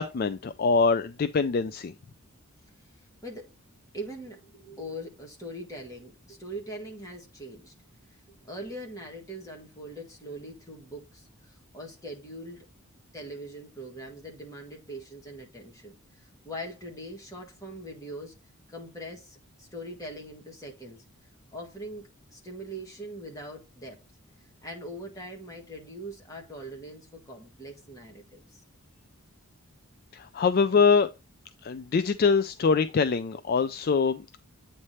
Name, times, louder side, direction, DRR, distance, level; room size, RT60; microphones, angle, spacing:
voice 1, 0.0-1.9 30.1-31.1 31.6-34.4, left 5 dB, 40° left, 0.3 m, -24 dB
voice 2, 3.9-7.7 8.5-12.6 13.1-15.9 16.4-18.3 18.7-21.0 21.5-24.0 24.6-28.6, right 1 dB, 15° left, 1.7 m, -41 dB
8.5 x 3.2 x 4.2 m
head